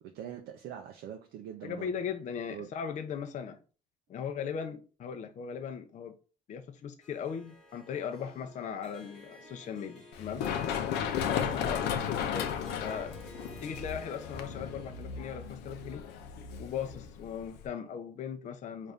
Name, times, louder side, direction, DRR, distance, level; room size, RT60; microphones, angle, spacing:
voice 1, 0.0-1.9 2.5-2.7, right 9 dB, 75° right, 0.5 m, -43 dB
voice 2, 1.6-3.6 4.1-6.1 6.5-10.5 11.2-13.2 13.6-16.0 16.6-18.9, left 7 dB, 45° left, 0.5 m, -38 dB
Harp, 7.0-15.4, left 1 dB, 5° left, 1.1 m, -53 dB
Run, 10.1-17.7, left 8 dB, 85° left, 0.6 m, -35 dB
4.0 x 2.5 x 3.4 m
cardioid pair, 110°, 17 cm